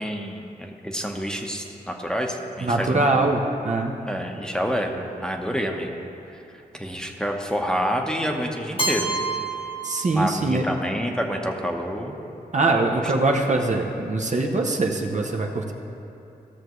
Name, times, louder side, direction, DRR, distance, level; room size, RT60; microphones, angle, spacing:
voice 1, 0.0-3.0 4.0-6.0 6.7-9.1 10.1-12.2 13.0-13.3, equal, 5° left, 2 dB, 1.0 m, -28 dB
voice 2, 2.6-4.0 9.8-10.6 12.5-15.7, right 2 dB, 45° right, 1 dB, 0.9 m, -23 dB
Keyboard (musical), 8.8-10.7, right 2 dB, 35° left, 1.1 m, -29 dB
15.0 x 6.6 x 3.1 m, 2.8 s
cardioid pair, 45°, 17 cm